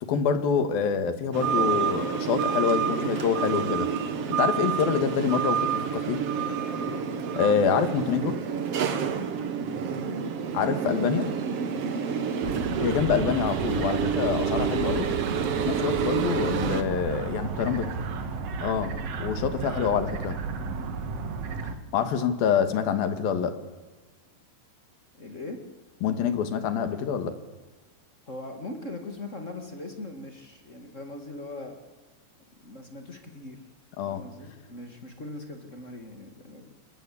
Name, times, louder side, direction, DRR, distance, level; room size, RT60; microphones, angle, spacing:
voice 1, 0.0-3.9 4.3-6.2 7.4-8.4 10.5-11.3 12.8-15.1 15.6-17.9 18.6-20.4 21.9-23.5 26.0-27.3 34.0-34.2, left 7 dB, 60° left, 9 dB, 3.3 m, -26 dB
sound 1, 1.3-16.8, right 7 dB, 80° right, 1.3 m, -28 dB
voice 2, 2.5-3.5 6.8-7.1 9.5-10.1 12.0-12.6 17.4-18.6 20.6-20.9 25.1-25.6 28.3-31.8 32.6-33.6 34.0-36.8, left 2 dB, 45° left, 4 dB, 0.9 m, -41 dB
sound 2, 12.4-21.8, right 4 dB, 55° right, 1.8 m, -33 dB
28.0 x 20.5 x 8.5 m, 1.3 s
omnidirectional pair, 5.1 m